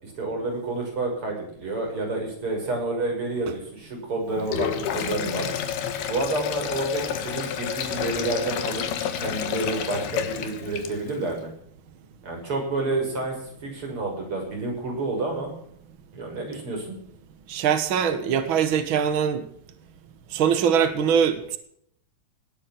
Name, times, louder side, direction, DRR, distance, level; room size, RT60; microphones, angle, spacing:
voice 1, 0.0-5.5 6.1-8.9 9.2-11.5 12.2-13.4 13.6-15.5 16.1-17.0, right 2 dB, 30° right, 1 dB, 7.0 m, -29 dB
Sink (filling or washing), 4.4-11.2, left 8 dB, 70° left, 3.4 m, -29 dB
voice 2, 17.5-19.4 20.3-21.6, right 7 dB, 80° right, 9 dB, 1.1 m, -22 dB
19.0 x 11.0 x 6.1 m, 0.66 s
omnidirectional pair, 4.8 m